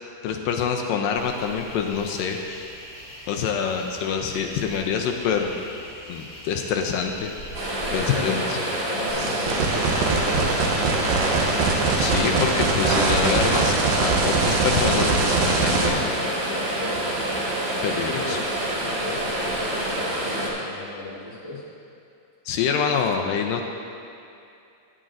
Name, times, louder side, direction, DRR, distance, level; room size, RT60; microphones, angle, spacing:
voice 1, 0.2-2.7 3.3-5.8 6.1-7.3 7.9-8.6 12.0-16.1 17.8-18.4 22.5-23.6, left 7 dB, 80° left, 3 dB, 2.1 m, -26 dB
sound 1, 1.1-19.9, equal, 15° left, 1.5 m, -42 dB
sound 2, 7.5-20.5, right 1 dB, 45° right, 2.5 m, -27 dB
voice 2, 7.8-8.5 8.9-11.4 16.7-17.1 18.0-18.5 18.8-21.6, left 2 dB, 45° left, -7 dB, 0.7 m, -37 dB
sound 3, 9.1-15.9, right 4 dB, 80° right, 2.7 m, -23 dB
16.5 x 8.9 x 2.6 m, 2.6 s
omnidirectional pair, 4.2 m